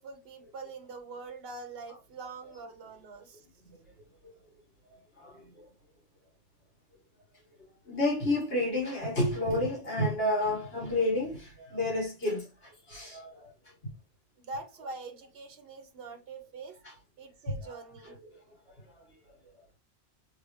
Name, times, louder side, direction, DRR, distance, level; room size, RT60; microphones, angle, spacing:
voice 1, 0.0-3.4 14.4-16.7 17.2-18.1, right 3 dB, 70° right, 1.1 m, -44 dB
voice 2, 5.2-5.6 7.9-13.5 17.7-17.8 18.0-18.3, left 1 dB, 70° left, 1.9 m, -30 dB
3.6 x 3.4 x 3.1 m
omnidirectional pair, 1.1 m